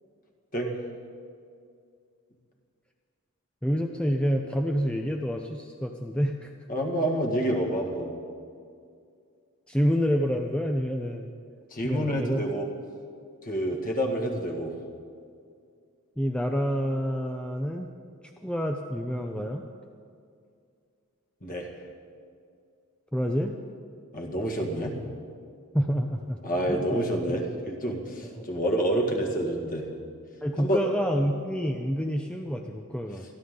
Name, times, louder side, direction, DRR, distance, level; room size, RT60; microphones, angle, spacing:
voice 1, 3.6-6.5 9.7-11.3 11.8-12.5 16.2-17.9 18.4-19.6 23.1-23.5 25.7-26.4 26.7-26.8 28.4-28.5 30.4-33.2, equal, 5° left, 3 dB, 0.6 m, -28 dB
voice 2, 6.7-8.1 11.7-12.7 13.4-14.7 21.4-21.7 24.1-25.0 26.4-29.9 30.6-30.8, right 1 dB, 40° left, 1 dB, 2.0 m, -28 dB
27.0 x 11.0 x 3.9 m, 2.3 s
head